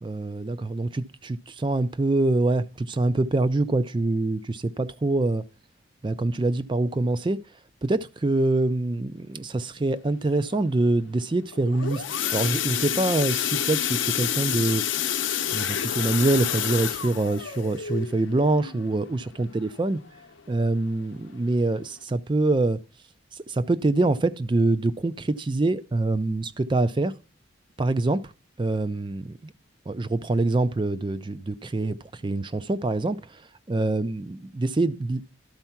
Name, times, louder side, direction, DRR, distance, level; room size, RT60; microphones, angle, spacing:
voice 1, 0.0-5.4 6.0-7.4 7.8-12.0 12.3-14.8 15.5-20.0 20.5-22.8 23.5-27.1 27.8-28.2 28.6-29.5 29.9-33.2 33.7-35.2, right 2 dB, 25° right, 0.4 m, -25 dB
sound 1, 11.5-20.2 20.6-20.9 21.2-21.3 21.7-21.8, left 9 dB, 75° left, 0.7 m, -29 dB
12.0 x 4.5 x 5.8 m
head